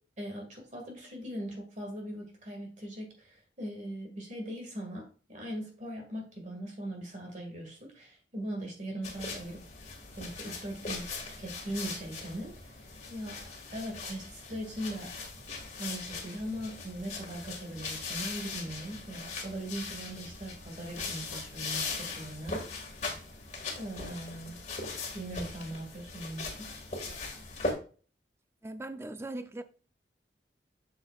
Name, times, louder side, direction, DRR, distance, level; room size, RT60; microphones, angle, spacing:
voice 1, 0.2-5.0 5.3-9.6 10.1-11.0 11.4-13.4 13.7-15.1 15.8-23.0 23.8-24.6 25.1-26.7, right 1 dB, 45° right, 1.8 m, -40 dB
sound 1, 9.0-27.7, left 3 dB, 40° left, 1.8 m, -40 dB
voice 2, 28.6-29.6, right 2 dB, 15° right, 0.4 m, -39 dB
7.9 x 7.0 x 2.4 m
head